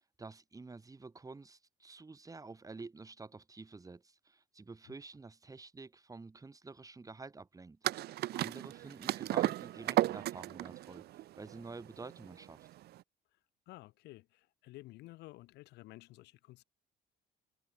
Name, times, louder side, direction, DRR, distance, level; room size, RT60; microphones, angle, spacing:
voice 1, 0.2-7.8 8.3-11.1 11.4-12.7, right 3 dB, 20° right, 5.1 m, -49 dB
sound 1, 7.8-13.0, right 15 dB, 70° right, 1.3 m, -34 dB
voice 2, 13.7-16.6, left 19 dB, 85° left, 5.1 m, -53 dB
cardioid pair, 110°, 17 cm